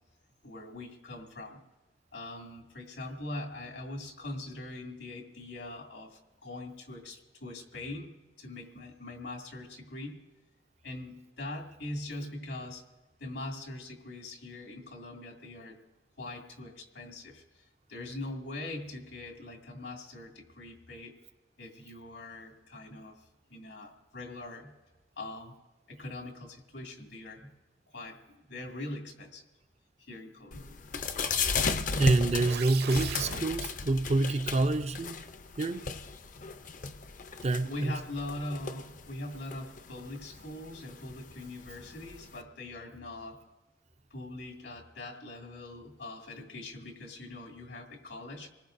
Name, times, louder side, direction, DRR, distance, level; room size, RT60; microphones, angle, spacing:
voice 1, 0.4-1.6 2.1-10.3 10.8-12.8 13.2-15.8 16.2-21.1 21.6-24.8 25.2-25.6 25.9-27.6 27.9-29.5 30.1-30.9 37.6-43.4 44.1-48.5, left 2 dB, 80° left, 2.3 m, -42 dB
sound 1, 30.5-42.4, left 4 dB, 45° left, 0.6 m, -36 dB
voice 2, 32.0-35.2 35.6-35.9 37.4-38.0, right 2 dB, 35° right, 0.5 m, -27 dB
sound 2, 32.2-33.4, right 6 dB, 60° right, 0.9 m, -38 dB
27.0 x 19.5 x 2.6 m
head